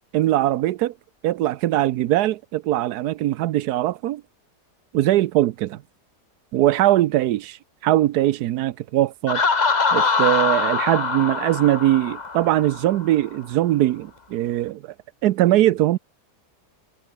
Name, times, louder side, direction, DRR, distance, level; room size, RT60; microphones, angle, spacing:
voice 1, 0.1-0.9 1.2-4.2 4.9-5.8 6.5-9.4 9.9-14.8 15.2-16.0, right 14 dB, 90° right, 1.2 m, -21 dB
Laughter, 9.3-13.0, left 4 dB, 30° left, 1.3 m, -23 dB
omnidirectional pair, 1.7 m